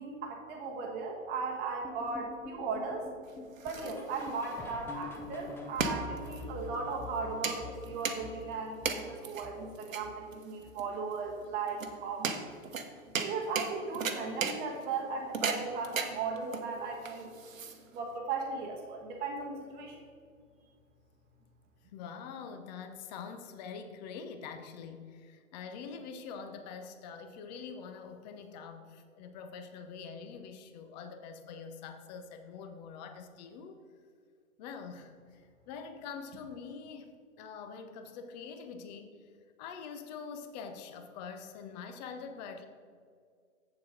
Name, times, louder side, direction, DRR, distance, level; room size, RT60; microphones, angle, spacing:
voice 1, 0.0-3.1 3.6-12.4 13.2-17.3 17.9-20.0, right 4 dB, 25° right, 1 dB, 1.1 m, -37 dB
sound 1, 1.8-11.0 11.2-11.6 11.9-12.0 12.5-12.6 13.1-13.2, left 2 dB, 5° left, 0.6 m, -47 dB
sound 2, 3.2-18.2, right 5 dB, 75° right, 1.1 m, -38 dB
voice 2, 21.9-33.8 34.6-39.3 39.6-42.7, left 6 dB, 30° left, 7 dB, 0.9 m, -45 dB
7.9 x 7.2 x 5.1 m, 2.2 s
figure-of-eight pair, 120°, 40 cm